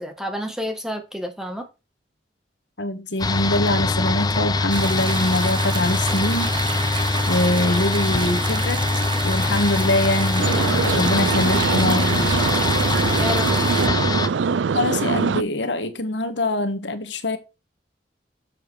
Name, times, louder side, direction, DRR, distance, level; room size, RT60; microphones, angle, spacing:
voice 1, 0.0-1.7 13.1-13.5, equal, 5° right, 1.8 m, -29 dB
voice 2, 2.8-6.5 7.3-12.3 14.7-17.4, left 1 dB, 80° left, 1.4 m, -24 dB
sound 1, 3.2-14.3, left 3 dB, 20° left, 0.6 m, -23 dB
sound 2, 4.7-13.9, right 6 dB, 25° right, 0.4 m, -31 dB
sound 3, 10.4-15.4, right 5 dB, 85° right, 0.5 m, -23 dB
7.2 x 7.1 x 4.7 m
head